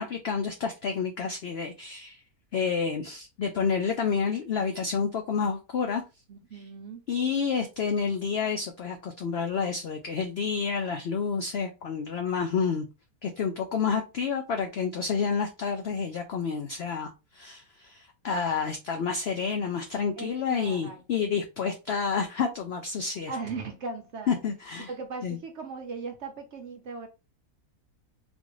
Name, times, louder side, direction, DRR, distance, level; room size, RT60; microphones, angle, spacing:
voice 1, 0.0-2.2 2.5-6.0 7.1-12.9 13.2-23.3 24.3-24.9 25.2-25.4, left 6 dB, 75° left, 0.5 m, -29 dB
voice 2, 6.3-7.0 20.2-21.3 23.3-24.4 24.9-27.1, right 4 dB, 55° right, 0.9 m, -38 dB
3.6 x 2.5 x 3.1 m
omnidirectional pair, 1.6 m